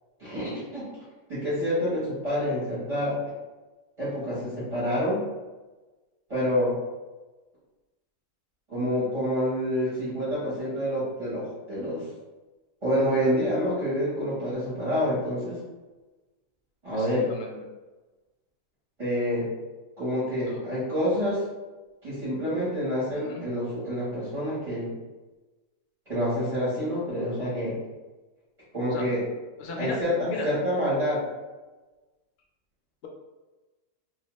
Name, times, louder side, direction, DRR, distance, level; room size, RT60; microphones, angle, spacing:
voice 1, 0.2-0.8 1.3-3.2 4.0-5.3 6.3-6.8 8.7-12.1 12.8-15.6 16.8-17.3 19.0-19.5 20.0-21.4 22.0-25.0 26.1-27.8 28.7-29.2 29.8-30.1 30.4-31.2, equal, 30° right, -9 dB, 0.8 m, -27 dB
voice 2, 16.9-17.7 20.5-20.6 23.2-23.4 28.9-29.1 29.6-30.5, left 2 dB, 65° left, 0 dB, 0.7 m, -36 dB
2.7 x 2.1 x 3.0 m, 1.2 s
omnidirectional pair, 1.6 m